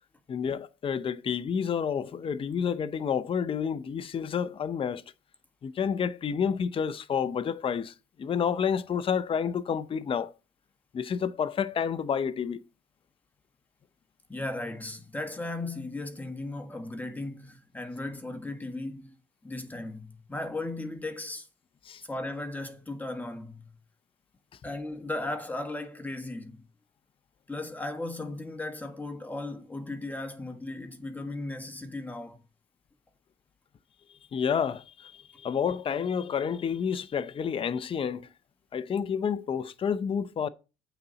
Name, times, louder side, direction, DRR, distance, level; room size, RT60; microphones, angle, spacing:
voice 1, 0.3-5.0 5.6-10.3 10.9-12.6 21.8-22.0 34.3-38.3 38.7-40.5, left 7 dB, 30° left, 0.6 m, -29 dB
voice 2, 14.3-19.1 19.4-21.5 22.0-23.7 24.6-26.6 27.5-32.4, left 2 dB, 10° left, 1.5 m, -36 dB
8.5 x 4.1 x 6.8 m
cardioid pair, 110°, 17 cm